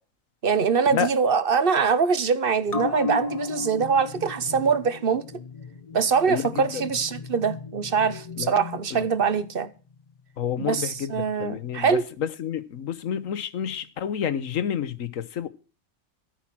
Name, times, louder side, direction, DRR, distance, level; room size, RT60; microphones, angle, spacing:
voice 1, 0.4-5.2 5.9-9.7 10.6-12.0, right 6 dB, 45° right, 1.0 m, -23 dB
sound 1, 2.7-9.6 9.9-10.0, left 4 dB, 30° left, 1.0 m, -35 dB
voice 2, 6.3-6.8 8.4-8.5 9.0-9.1 10.4-15.5, left 8 dB, 70° left, 1.3 m, -29 dB
13.5 x 9.1 x 6.1 m
omnidirectional pair, 1.5 m